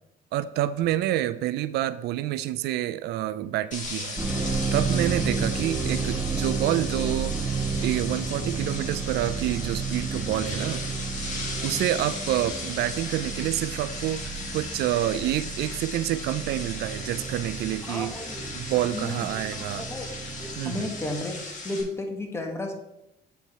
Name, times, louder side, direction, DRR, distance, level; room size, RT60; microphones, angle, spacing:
voice 1, 0.3-4.2 4.7-10.8 11.6-18.1 18.5-19.9 20.6-20.9, right 13 dB, 75° right, 14 dB, 0.4 m, -28 dB
sound 1, 3.7-21.8, left 3 dB, 50° left, 2.1 m, -37 dB
sound 2, 4.2-21.1, right 5 dB, 15° right, 1.2 m, -32 dB
voice 2, 17.9-18.4 18.9-20.1 20.4-21.3 21.6-22.7, left 2 dB, 15° left, 3 dB, 1.5 m, -34 dB
8.0 x 4.6 x 4.2 m, 0.88 s
cardioid pair, 110°, 17 cm